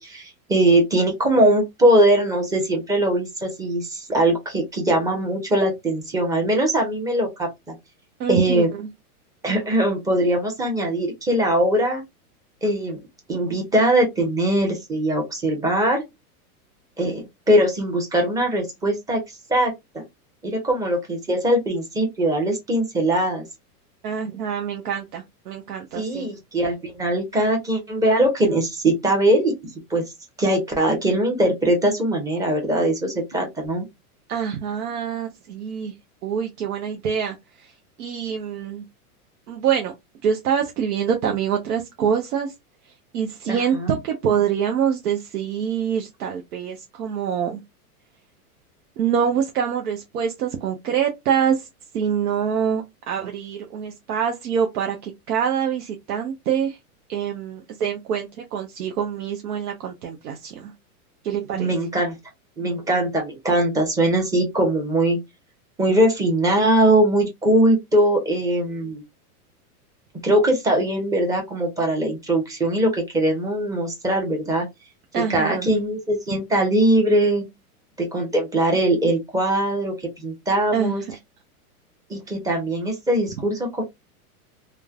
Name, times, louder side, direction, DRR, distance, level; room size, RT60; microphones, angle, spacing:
voice 1, 0.0-7.7 8.3-8.7 9.4-12.0 12.6-13.0 13.3-16.0 17.0-20.0 20.4-23.4 25.9-29.5 29.9-30.0 30.4-33.8 43.5-44.0 61.6-62.1 62.6-65.2 65.8-69.0 70.2-74.7 75.2-77.4 78.0-81.0 82.1-83.8, right 1 dB, 10° right, 0.7 m, -21 dB
voice 2, 8.2-8.9 24.0-26.3 34.3-35.9 36.2-37.4 38.0-38.8 39.5-39.9 40.2-42.5 43.1-47.6 49.0-51.6 51.9-56.8 57.1-60.7 61.2-61.7 75.1-75.7 80.7-80.9, right 8 dB, 75° right, 0.8 m, -25 dB
3.1 x 2.1 x 2.3 m
hypercardioid pair, 130°, 45 cm